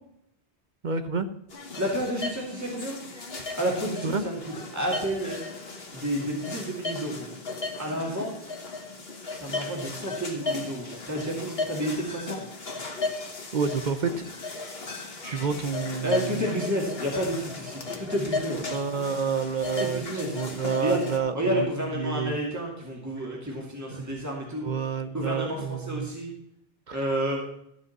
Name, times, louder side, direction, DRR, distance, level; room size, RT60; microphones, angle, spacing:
voice 1, 0.8-1.3 4.0-4.2 13.5-14.6 15.2-16.4 18.7-21.7 21.9-22.4 23.2-23.3 23.9-24.0 24.6-26.1 26.9-27.0, right 5 dB, 50° right, 10 dB, 0.8 m, -29 dB
sound 1, 1.5-21.2, left 3 dB, 75° left, 1.8 m, -36 dB
voice 2, 1.8-3.0 3.6-4.4 4.7-5.4 5.9-7.3 7.8-8.8 9.4-12.4 16.0-18.7 19.8-20.4 20.8-21.0 21.3-24.7 25.1-26.3 26.9-27.4, equal, 15° right, -2 dB, 2.5 m, -30 dB
14.0 x 5.4 x 7.1 m, 0.76 s
omnidirectional pair, 1.0 m